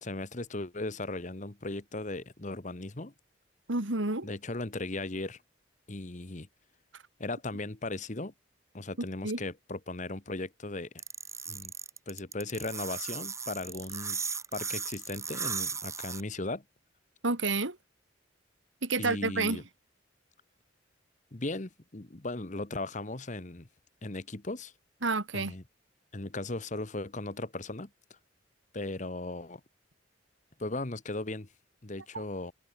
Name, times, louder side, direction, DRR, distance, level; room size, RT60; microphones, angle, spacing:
voice 1, 0.0-3.1 4.2-5.4 5.9-6.5 7.2-8.3 8.7-10.9 11.5-11.7 12.1-14.2 14.5-16.6 19.0-19.6 21.3-23.7 24.0-24.7 25.3-25.6 26.1-27.9 28.7-29.6 30.6-31.5 31.8-32.5, left 2 dB, 40° left, 1.3 m, -37 dB
voice 2, 3.7-4.3 9.2-9.4 17.2-17.8 18.8-19.6 25.0-25.5 32.1-32.2, right 3 dB, 80° right, 2.7 m, -29 dB
sound 1, 11.0-16.2, right 5 dB, 15° right, 1.8 m, -36 dB
head